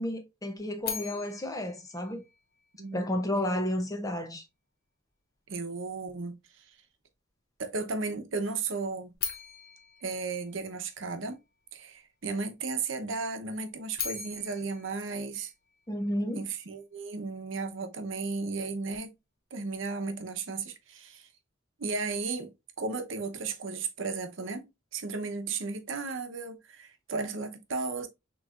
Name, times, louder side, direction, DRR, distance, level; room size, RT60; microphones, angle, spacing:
voice 1, 0.0-2.2 2.9-4.4 15.9-16.4, left 1 dB, 15° left, 0.6 m, -32 dB
sound 1, 0.8-3.0 9.1-11.3 13.7-16.1, left 8 dB, 50° left, 0.9 m, -40 dB
voice 2, 5.5-6.4 7.6-9.1 10.0-11.4 11.7-15.5 16.3-19.1 19.5-21.3 21.8-22.5 22.8-28.1, right 4 dB, 70° right, 0.8 m, -34 dB
6.4 x 3.0 x 2.4 m
head